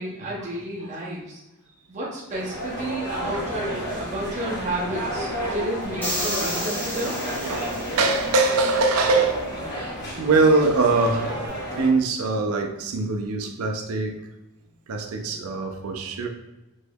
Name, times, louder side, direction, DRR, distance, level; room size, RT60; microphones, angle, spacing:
voice 1, 0.0-1.4 1.9-7.1, right 1 dB, 35° right, -6 dB, 0.6 m, -31 dB
sound 1, 2.3-11.9, right 1 dB, 45° left, 1.0 m, -31 dB
sound 2, 6.0-8.3, left 1 dB, 10° left, 0.7 m, -31 dB
voice 2, 7.3-9.5 10.2-11.4 11.8-14.2 14.9-16.3, right 3 dB, 75° right, 4 dB, 0.5 m, -22 dB
3.4 x 3.0 x 2.3 m, 0.99 s
head